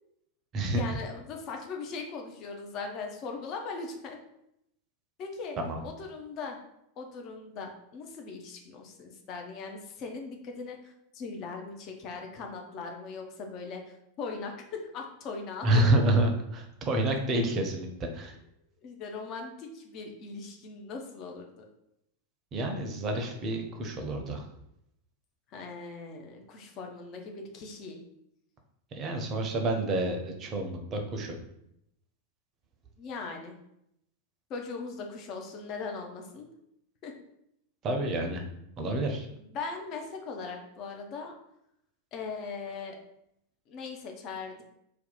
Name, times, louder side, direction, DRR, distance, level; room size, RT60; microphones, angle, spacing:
voice 1, 0.7-4.2 5.2-5.6 5.8-6.6 7.0-15.7 18.8-21.6 25.5-28.0 33.0-33.6 34.5-36.5 37.0-37.1 39.3-41.4 42.1-43.0 43.7-44.6, left 4 dB, 35° left, 3 dB, 0.5 m, -39 dB
voice 2, 15.6-18.3 22.5-24.5 28.9-31.4 37.8-38.5 38.8-39.3, right 1 dB, 30° right, 4 dB, 0.6 m, -28 dB
2.7 x 2.2 x 4.0 m, 0.79 s
figure-of-eight pair, 90°, 0 cm